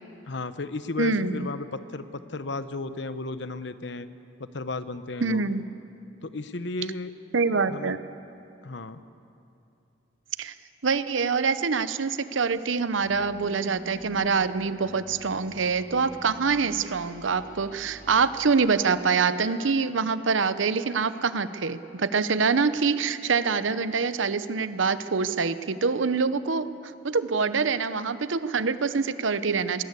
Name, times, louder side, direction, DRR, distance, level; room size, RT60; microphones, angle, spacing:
voice 1, 0.3-4.1 4.4-5.4 6.2-7.1 7.7-8.0 8.6-9.0, left 3 dB, 65° left, 12 dB, 0.9 m, -34 dB
voice 2, 1.0-1.4 5.2-5.6 7.3-8.0 10.4-10.5 10.8-26.7 27.0-29.8, right 5 dB, 90° right, 13 dB, 0.8 m, -25 dB
sound 1, 13.0-18.5, equal, 50° right, 2.3 m, -46 dB
21.0 x 17.5 x 8.3 m, 2.7 s
head